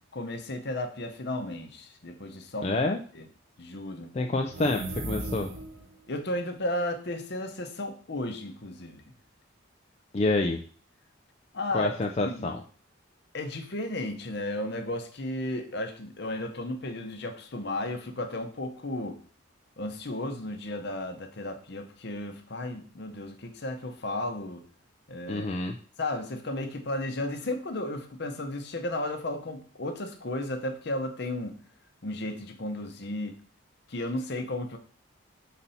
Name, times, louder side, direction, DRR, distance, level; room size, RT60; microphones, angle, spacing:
voice 1, 0.1-2.7 3.1-3.3 3.6-4.1 6.1-9.0 11.5-11.9 12.2-12.5 13.3-19.2 19.8-24.7 25.1-25.5 26.0-31.6 32.0-33.4 33.9-34.8, left 1 dB, 50° left, 6 dB, 0.8 m, -34 dB
voice 2, 2.6-3.0 4.1-5.5 10.1-10.6 11.7-12.6 25.3-25.8, left 2 dB, 30° left, 3 dB, 0.3 m, -27 dB
sound 1, 4.4-6.0, right 2 dB, 60° right, 1.1 m, -36 dB
4.1 x 4.1 x 5.5 m, 0.43 s
head